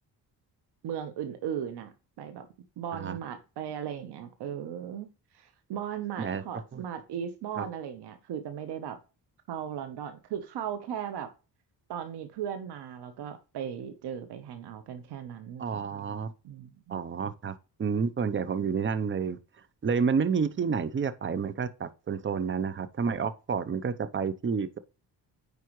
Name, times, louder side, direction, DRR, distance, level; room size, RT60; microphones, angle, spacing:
voice 1, 0.8-2.5 2.8-5.1 5.3-9.0 9.5-11.3 11.9-15.9 16.4-17.0, right 9 dB, 90° right, 1.1 m, -37 dB
voice 2, 15.6-16.3 16.9-17.5 17.8-19.4 19.8-24.8, right 6 dB, 30° right, 0.7 m, -29 dB
9.3 x 4.8 x 3.1 m
cardioid pair, 115°, 39 cm